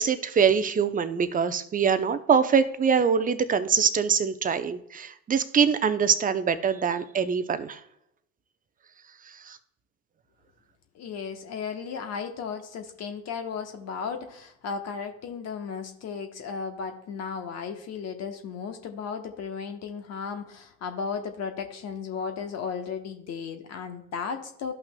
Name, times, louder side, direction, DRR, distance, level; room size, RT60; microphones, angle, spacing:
voice 1, 0.0-7.8 9.5-9.6, right 6 dB, 20° right, 12 dB, 0.6 m, -24 dB
voice 2, 10.9-24.7, left 6 dB, 45° left, 6 dB, 1.1 m, -35 dB
13.5 x 5.7 x 2.2 m, 0.79 s
hypercardioid pair, 65°, 37 cm